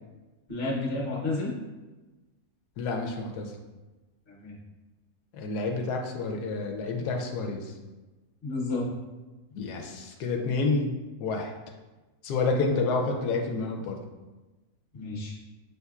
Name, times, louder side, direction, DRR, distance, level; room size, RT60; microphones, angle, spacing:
voice 1, 0.5-1.5 4.3-4.6 8.4-8.9 14.9-15.3, left 2 dB, 40° left, -3 dB, 1.1 m, -31 dB
voice 2, 2.8-3.5 5.3-7.7 9.5-10.9 11.2-11.5 12.2-14.0, left 3 dB, 90° left, 2 dB, 1.1 m, -29 dB
5.6 x 3.3 x 2.3 m, 1.2 s
omnidirectional pair, 1.6 m